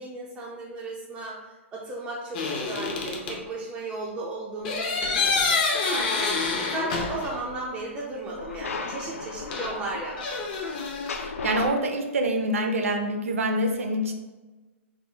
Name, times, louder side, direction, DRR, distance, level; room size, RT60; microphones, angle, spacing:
voice 1, 0.0-1.4 1.7-10.4, right 2 dB, 10° right, -4 dB, 0.3 m, -35 dB
sound 1, 2.3-3.4 4.6-7.5 7.8-7.9 9.5-11.1, left 4 dB, 40° left, 0.6 m, -27 dB
sound 2, 6.2-7.5 8.3-11.7, left 4 dB, 90° left, 0.4 m, -37 dB
voice 2, 11.2-14.1, right 1 dB, 80° right, 4 dB, 0.6 m, -26 dB
3.6 x 2.2 x 3.3 m, 1.2 s
hypercardioid pair, 150°, 7 cm